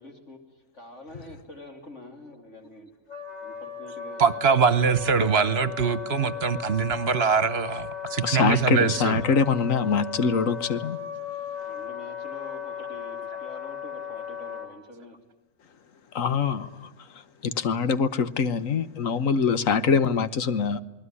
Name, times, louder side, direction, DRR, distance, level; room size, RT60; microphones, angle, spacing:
voice 1, 0.0-2.9 3.4-4.3 11.7-15.2, left 2 dB, 65° left, 3.5 m, -45 dB
Wind instrument woodwind instrument, 3.1-14.7, left 8 dB, 30° left, 3.9 m, -36 dB
voice 2, 4.2-9.2, right 6 dB, 55° right, 1.3 m, -23 dB
voice 3, 8.2-11.0 16.1-16.9 17.4-20.8, left 5 dB, 85° left, 1.5 m, -24 dB
28.5 x 20.0 x 9.8 m
omnidirectional pair, 1.3 m